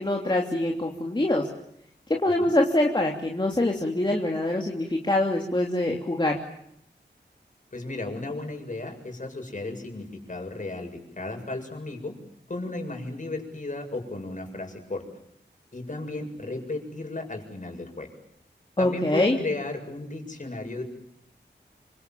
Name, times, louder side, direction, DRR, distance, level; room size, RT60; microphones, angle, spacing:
voice 1, 0.0-1.5 2.2-6.4 18.8-19.4, left 1 dB, 25° left, 0 dB, 3.1 m, -24 dB
voice 2, 7.7-12.2 12.5-15.0 15.7-18.1 18.8-20.8, left 2 dB, 45° left, 3 dB, 7.4 m, -34 dB
27.5 x 26.0 x 7.7 m, 0.74 s
wide cardioid pair, 85°, 18 cm